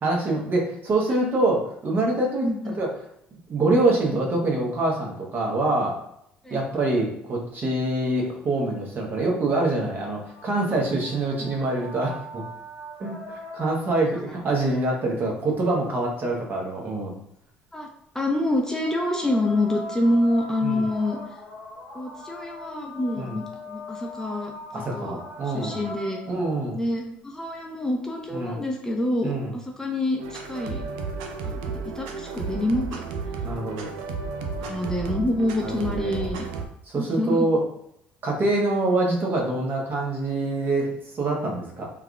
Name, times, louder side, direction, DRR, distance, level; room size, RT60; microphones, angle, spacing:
voice 1, 0.0-2.5 2.8-2.9 3.5-6.0 6.5-12.4 13.0-17.2 20.6-20.8 23.2-23.4 24.7-25.8 26.3-26.8 28.3-28.6 29.2-29.5 33.4-33.9 35.6-36.3 36.9-37.6 38.2-41.9, right 2 dB, 40° right, -1 dB, 0.9 m, -25 dB
voice 2, 2.4-2.7 6.4-6.6 11.4-11.6 17.7-17.9 18.1-21.2 21.9-25.2 25.4-26.2 26.7-30.8 31.4-33.0 34.6-36.5 36.9-37.5, left 1 dB, 10° left, 1 dB, 0.5 m, -27 dB
sound 1, 9.4-14.1 18.5-26.7 28.0-28.1, left 1 dB, 75° left, 0.9 m, -41 dB
sound 2, 30.2-36.6, right 4 dB, 75° right, 0.4 m, -33 dB
3.4 x 2.3 x 2.3 m, 0.74 s
hypercardioid pair, 60°, 5 cm